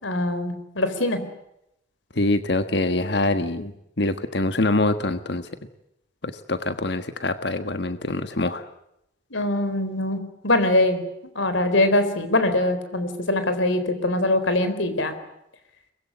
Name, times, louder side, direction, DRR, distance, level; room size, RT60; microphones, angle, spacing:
voice 1, 0.0-1.2 9.3-11.0 11.3-15.2, left 1 dB, 85° left, 10 dB, 4.2 m, -23 dB
voice 2, 2.1-3.7 4.0-5.5 6.2-8.6, left 2 dB, 60° left, 10 dB, 1.5 m, -24 dB
24.0 x 21.5 x 9.9 m, 0.81 s
head